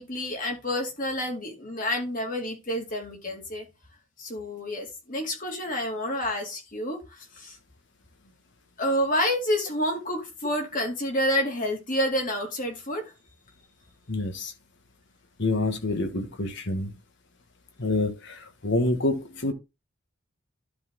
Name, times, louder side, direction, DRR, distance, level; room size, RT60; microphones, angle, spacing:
voice 1, 0.0-3.6 4.2-7.0 7.4-7.6 8.8-13.0, left 1 dB, 40° left, 2.6 m, -28 dB
voice 2, 14.1-14.5 15.4-16.9 17.8-19.5, left 2 dB, 60° left, 1.4 m, -27 dB
12.0 x 4.1 x 3.8 m
head